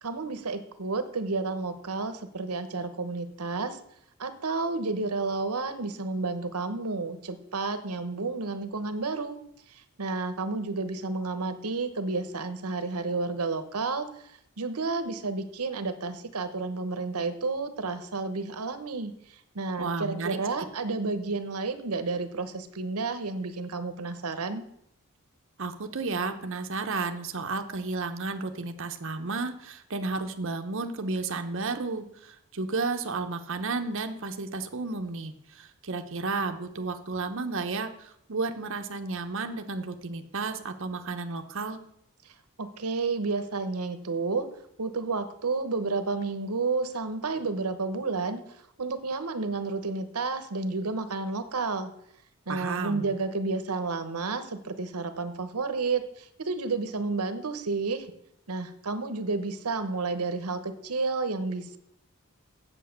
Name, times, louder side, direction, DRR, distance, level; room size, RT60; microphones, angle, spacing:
voice 1, 0.0-3.8 4.2-9.4 9.7-24.7 42.2-44.5 44.8-48.4 48.8-51.9 52.5-58.1 58.5-61.8, right 3 dB, 85° right, 10 dB, 1.0 m, -31 dB
voice 2, 19.8-20.4 25.6-41.8 52.5-53.1, right 3 dB, 60° right, 6 dB, 0.8 m, -32 dB
8.1 x 7.6 x 6.5 m, 0.76 s
head